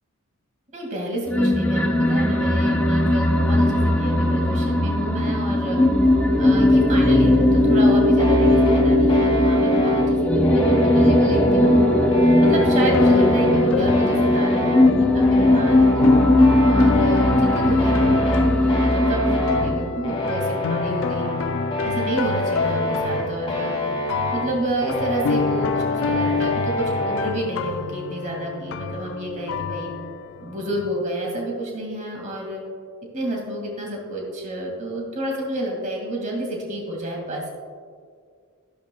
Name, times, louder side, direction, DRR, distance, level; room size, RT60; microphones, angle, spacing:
voice 1, 0.7-5.8 6.4-11.8 12.4-14.8 15.1-16.1 16.6-21.3 21.8-23.7 24.3-29.9 30.4-32.6 33.1-37.5, right 1 dB, 35° right, -1 dB, 2.0 m, -29 dB
sound 1, 1.3-19.9, left 1 dB, 5° left, 0.7 m, -18 dB
sound 2, 8.2-27.4, equal, 25° left, 1.6 m, -27 dB
sound 3, 12.4-31.0, left 6 dB, 60° left, 0.3 m, -29 dB
12.5 x 11.5 x 2.3 m, 2.1 s
head